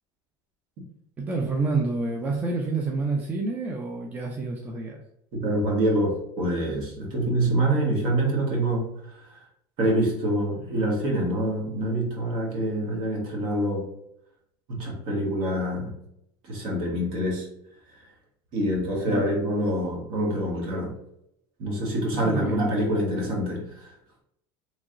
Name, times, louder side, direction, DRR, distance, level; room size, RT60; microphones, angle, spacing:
voice 1, 1.2-5.0 19.1-19.3 22.2-22.7, right 3 dB, 15° right, 0 dB, 0.4 m, -28 dB
voice 2, 5.3-9.4 9.8-13.9 14.7-15.9 16.4-17.5 18.5-20.9 21.6-23.9, right 1 dB, 55° right, -1 dB, 1.2 m, -26 dB
3.0 x 2.7 x 2.5 m, 0.74 s
cardioid pair, 155°, 10 cm